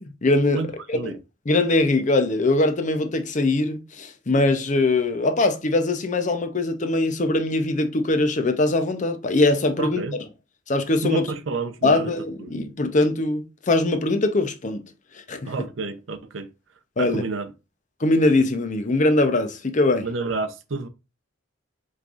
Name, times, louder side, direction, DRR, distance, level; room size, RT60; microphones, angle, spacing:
voice 1, 0.2-1.0 1.5-10.0 10.7-11.3 11.8-14.8 15.1-15.5 17.0-17.2 18.0-20.1, left 2 dB, 40° left, 0.7 m, -22 dB
voice 2, 9.8-10.2 11.0-12.1 12.4-12.6 15.4-16.5 17.0-17.5 20.0-20.9, right 4 dB, 75° right, 0.6 m, -29 dB
5.5 x 3.3 x 2.5 m
head